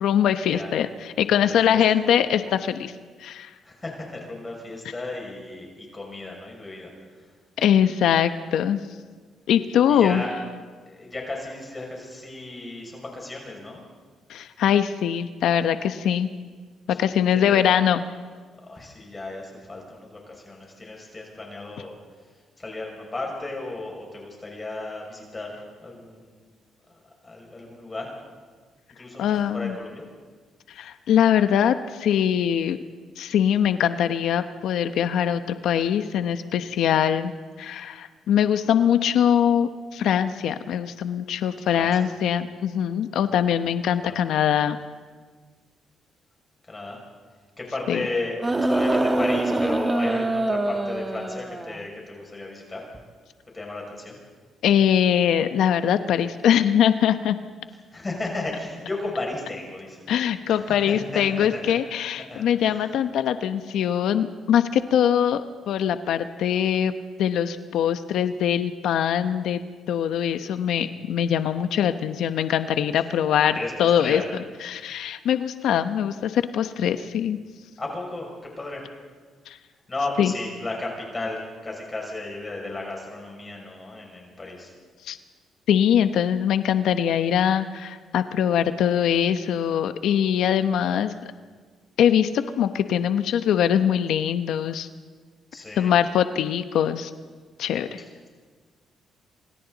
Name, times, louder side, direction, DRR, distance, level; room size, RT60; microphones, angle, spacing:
voice 1, 0.0-2.9 3.2-3.5 7.6-8.8 9.5-10.2 14.3-16.3 17.0-18.0 29.2-29.7 30.7-32.8 33.2-37.3 37.6-44.8 47.9-48.0 54.6-57.4 60.1-66.9 67.2-69.6 69.9-73.5 73.8-74.2 74.6-77.4 79.5-79.6 80.2-80.3 85.1-85.2 85.7-91.1 92.0-92.3 92.6-94.9 95.8-97.1 97.6-98.0, left 9 dB, 80° left, 10 dB, 0.9 m, -22 dB
voice 2, 1.3-1.8 3.6-6.9 7.2-7.3 9.9-10.3 10.9-13.8 16.9-17.0 17.3-17.7 18.6-21.9 22.6-26.4 26.9-28.1 29.0-30.0 41.7-42.1 44.0-44.2 46.7-47.0 47.6-52.8 53.5-54.2 57.9-60.0 60.5-61.2 61.5-61.7 62.3-62.9 73.0-73.1 73.5-74.2 77.8-78.8 79.9-84.7 90.8-91.0 95.5-95.9 98.0-98.3, left 2 dB, 25° left, -1 dB, 6.3 m, -34 dB
sound 1, 48.4-51.8 52.9-53.0, right 2 dB, 20° right, 1.5 m, -24 dB
27.0 x 27.0 x 4.1 m, 1.5 s
cardioid pair, 90°, 0 cm